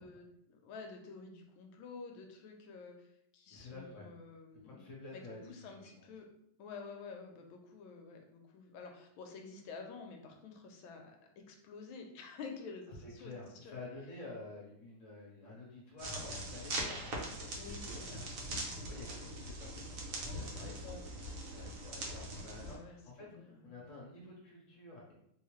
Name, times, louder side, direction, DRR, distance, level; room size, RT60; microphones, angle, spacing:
voice 1, 0.0-3.1 3.3-5.2 5.5-6.3 6.6-13.3 13.6-13.8 17.5-18.3 18.6-19.2 22.5-23.8, left 4 dB, 75° left, 3 dB, 1.3 m, -50 dB
voice 2, 3.5-4.1 4.6-6.0 13.0-18.2 18.8-25.1, left 2 dB, 50° left, -3 dB, 1.0 m, -50 dB
sound 1, 16.0-22.8, right 1 dB, 60° right, 0.9 m, -42 dB
3.5 x 2.7 x 3.1 m, 0.73 s
omnidirectional pair, 2.4 m